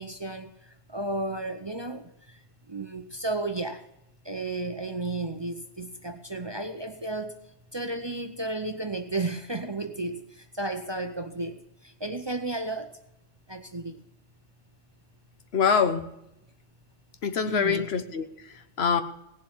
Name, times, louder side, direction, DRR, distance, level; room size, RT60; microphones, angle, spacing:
voice 1, 0.0-2.4 2.7-3.8 4.2-7.4 7.7-13.0 13.5-14.0 17.5-17.9, right 2 dB, 30° right, 0.6 m, -33 dB
voice 2, 15.5-16.1 17.2-19.0, left 6 dB, 60° left, 1.1 m, -25 dB
18.0 x 7.5 x 7.2 m
omnidirectional pair, 1.3 m